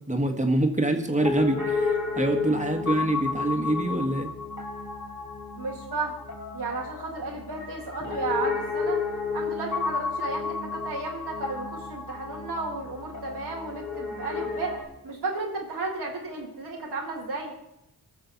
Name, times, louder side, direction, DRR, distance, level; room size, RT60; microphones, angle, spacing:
voice 1, 0.1-4.3, right 1 dB, 20° right, 4 dB, 1.7 m, -25 dB
Piano, 1.1-14.9, left 4 dB, 45° left, 2.6 m, -32 dB
voice 2, 5.6-6.2 6.5-9.0 9.3-14.8 15.0-17.5, right 3 dB, 90° right, -3 dB, 2.0 m, -33 dB
19.0 x 6.8 x 4.1 m, 0.87 s
cardioid pair, 60°, 38 cm